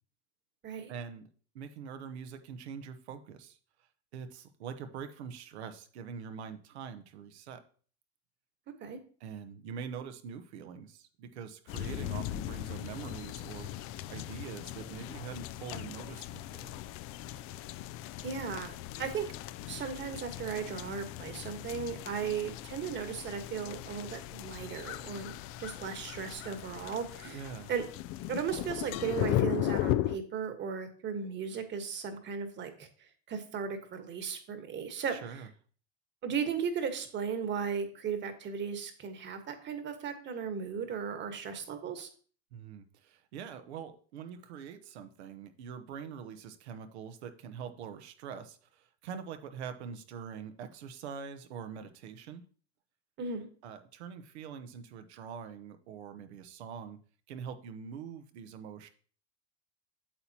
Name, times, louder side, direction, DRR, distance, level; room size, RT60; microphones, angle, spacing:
voice 1, 0.9-1.3 1.5-3.6 4.1-7.6 9.2-13.7 14.1-16.7 27.2-27.7 35.1-35.5 42.5-52.4 53.6-57.0 57.3-58.9, right 7 dB, 80° right, 8 dB, 1.0 m, -44 dB
sound 1, 11.7-30.2, left 14 dB, 45° left, 0.4 m, -37 dB
voice 2, 18.2-18.7 19.0-19.3 19.6-25.3 25.6-27.4 27.7-27.8 28.3-32.9 33.3-35.4 36.2-42.1 53.2-53.5, right 6 dB, 35° right, 8 dB, 1.4 m, -36 dB
8.8 x 6.9 x 2.9 m, 0.43 s
supercardioid pair, 110°, 32 cm